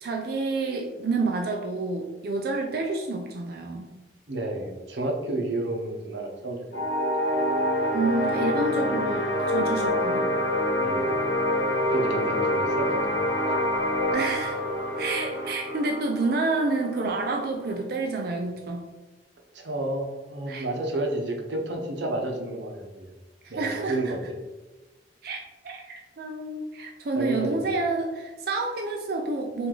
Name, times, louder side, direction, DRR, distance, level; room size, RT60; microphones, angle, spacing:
voice 1, 0.0-3.8 7.9-10.3 14.1-14.6 15.0-18.9 20.5-20.7 23.4-24.0 25.2-29.7, right 3 dB, 55° right, 2 dB, 0.4 m, -29 dB
voice 2, 4.3-6.9 10.8-11.0 11.9-13.1 13.5-13.6 19.5-23.1 23.5-24.2 27.1-27.7, right 2 dB, 75° right, 1 dB, 0.8 m, -31 dB
sound 1, 6.7-17.8, left 1 dB, 65° left, 1.0 m, -26 dB
4.7 x 2.6 x 3.8 m, 1.2 s
head